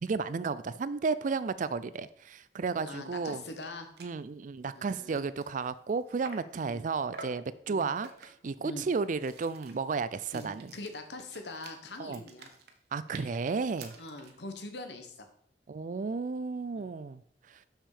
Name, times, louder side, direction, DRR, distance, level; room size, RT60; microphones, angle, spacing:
voice 1, 0.0-3.4 4.0-10.7 12.0-12.2 12.9-13.9 15.7-17.2, right 4 dB, 45° right, 16 dB, 0.4 m, -33 dB
voice 2, 2.8-3.9 4.7-5.3 6.6-6.8 7.7-7.9 8.6-8.8 10.3-10.5 10.7-12.5 14.0-15.3 16.7-16.9, left 2 dB, 75° left, 7 dB, 1.1 m, -43 dB
sound 1, 3.3-3.4 3.6-3.7 4.0-4.2 4.6-6.6 7.1-7.5 8.0-8.5 9.0-14.4, right 3 dB, 65° right, 1.0 m, -50 dB
6.6 x 6.1 x 4.9 m, 0.66 s
head